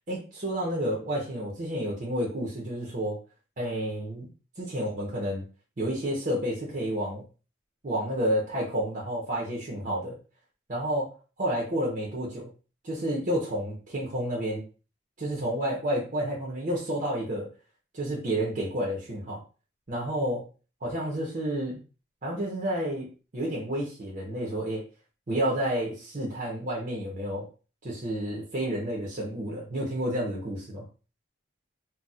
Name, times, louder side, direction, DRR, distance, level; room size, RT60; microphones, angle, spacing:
voice 1, 0.0-3.2 3.6-4.3 4.6-5.4 5.8-7.2 7.8-10.1 10.7-11.1 11.4-12.5 12.8-14.6 15.2-17.5 17.9-19.4 19.9-20.5 20.8-21.8 22.2-23.1 23.3-24.8 25.3-27.5 27.8-30.8, right 1 dB, 40° right, -4 dB, 0.8 m, -30 dB
4.1 x 2.3 x 2.3 m, 0.35 s
head